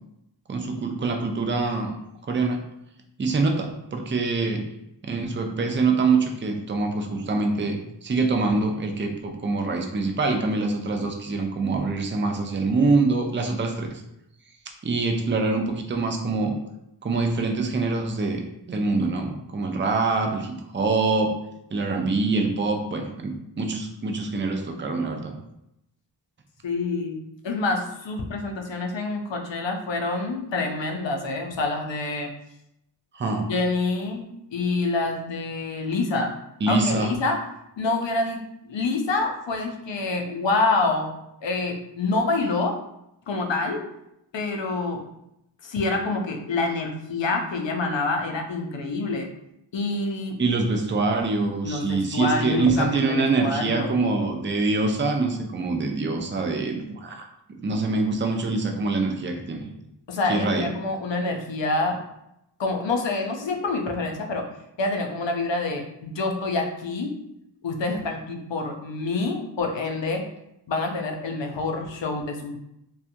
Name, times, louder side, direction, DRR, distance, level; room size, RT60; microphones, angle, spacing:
voice 1, 0.5-1.9 2.2-2.6 3.2-4.6 5.0-14.0 14.8-16.5 17.0-18.4 18.7-21.3 21.7-25.3 33.1-33.5 36.6-37.1 50.4-57.3 57.6-59.7 60.3-60.7, right 3 dB, 25° right, 3 dB, 0.4 m, -25 dB
voice 2, 26.6-32.3 33.5-36.4 36.7-37.5 37.8-38.4 38.7-41.1 41.4-42.8 43.3-43.9 44.3-45.1 45.6-49.3 49.7-50.4 51.6-53.9 60.1-62.0 62.6-64.5 64.8-67.2 67.6-70.3 70.7-72.6, left 3 dB, 85° left, 3 dB, 0.5 m, -27 dB
2.7 x 2.3 x 2.5 m, 0.82 s
wide cardioid pair, 45°, 44 cm